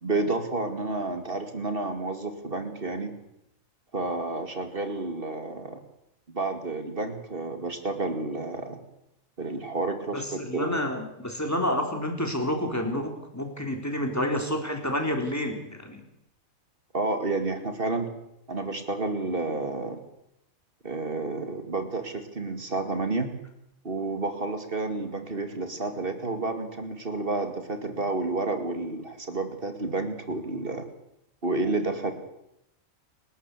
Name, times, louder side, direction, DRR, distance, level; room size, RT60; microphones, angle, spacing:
voice 1, 0.0-3.1 3.9-5.8 6.3-8.8 9.4-10.2 10.5-10.8 16.9-18.1 18.5-20.0 20.8-23.3 23.8-30.9 31.4-32.1, right 2 dB, 40° right, 7 dB, 2.6 m, -30 dB
voice 2, 10.1-16.0, left 1 dB, 10° left, 3 dB, 3.8 m, -29 dB
29.0 x 13.0 x 8.4 m, 0.84 s
omnidirectional pair, 1.4 m